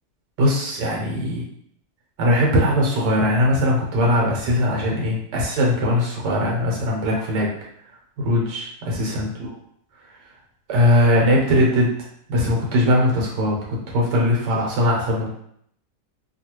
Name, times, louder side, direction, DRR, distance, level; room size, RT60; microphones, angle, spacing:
voice 1, 0.4-1.4 2.2-7.5 8.2-9.3 10.7-11.9 12.3-15.3, left 1 dB, 90° right, -2 dB, 1.4 m, -20 dB
3.1 x 2.4 x 2.9 m, 0.69 s
omnidirectional pair, 1.8 m